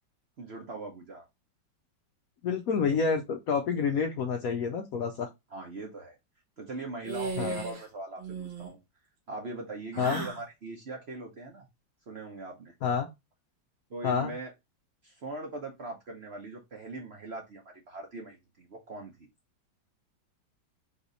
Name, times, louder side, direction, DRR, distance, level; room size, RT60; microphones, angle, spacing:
voice 1, 0.4-1.3 5.5-6.2 6.6-8.8 9.3-11.7 12.1-12.7 13.9-14.5 15.0-19.3, right 2 dB, 50° right, 0.8 m, -41 dB
voice 2, 2.4-5.3 7.4-7.6 10.0-10.2 12.8-13.1 14.0-14.3, left 6 dB, 70° left, 0.9 m, -28 dB
sound 1, 7.0-7.9 8.2-8.7 9.9-10.4, right 4 dB, 90° right, 2.0 m, -36 dB
4.0 x 2.9 x 3.8 m
omnidirectional pair, 2.0 m